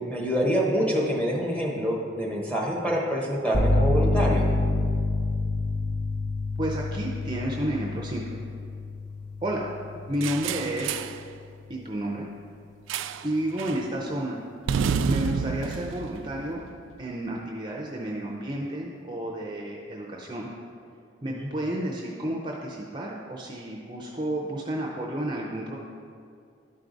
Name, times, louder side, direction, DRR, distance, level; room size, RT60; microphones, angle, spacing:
voice 1, 0.0-4.5 21.4-21.5, equal, 5° left, -3 dB, 1.1 m, -26 dB
sound 1, 3.5-11.3, left 2 dB, 40° left, 0.8 m, -28 dB
voice 2, 6.6-8.4 9.4-9.7 10.1-11.0 11.7-12.3 13.2-14.4 15.0-16.6 17.0-20.5 21.2-25.8, right 1 dB, 25° right, -1 dB, 0.6 m, -31 dB
sound 2, 10.2-11.2 12.9-13.3 13.6-13.9 14.7-17.0, right 6 dB, 85° right, 0.3 m, -29 dB
11.5 x 4.8 x 3.9 m, 2.4 s
head